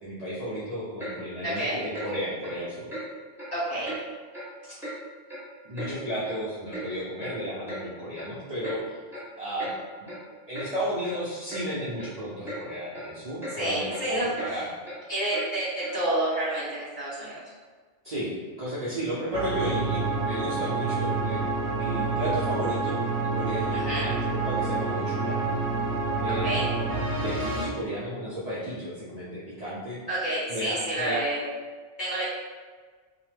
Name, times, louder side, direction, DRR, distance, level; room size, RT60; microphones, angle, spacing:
voice 1, 0.0-2.9 3.7-3.8 4.7-4.8 5.6-8.8 9.4-9.7 10.5-14.7 18.0-21.4 21.7-23.0 23.3-25.5 26.2-26.5 27.2-30.0 30.5-31.2, equal, 45° right, -10 dB, 0.6 m, -33 dB
Clock, 1.0-1.1 1.4-1.6 1.9-2.1 2.4-2.6 2.9-3.0 3.4-3.5 3.8-4.0 4.3-4.5 4.8-4.9 5.3-5.9 6.2-6.3 6.7-6.9 7.2-7.3 7.7-7.8 8.2-8.3 8.6-8.8 9.1-9.3 9.6-9.7 10.1-10.2 10.5-10.7 11.0-11.1 11.5-11.6 12.0-12.1 12.4-12.6 12.9-13.1 13.4-13.6 13.9-14.0 14.3-14.5 14.8-15.0 15.3-15.5 15.8-16.0, right 1 dB, 5° right, 0.7 m, -37 dB
voice 2, 1.4-1.8 3.5-3.9 13.6-14.6 15.1-15.6 15.9-17.4 23.8-24.1 26.4-26.6 30.1-31.4 32.0-32.2, right 1 dB, 40° left, -11 dB, 1.6 m, -29 dB
sound 1, 19.3-27.6, right 3 dB, 70° right, 0.8 m, -28 dB
3.1 x 2.0 x 3.3 m, 1.5 s
omnidirectional pair, 1.2 m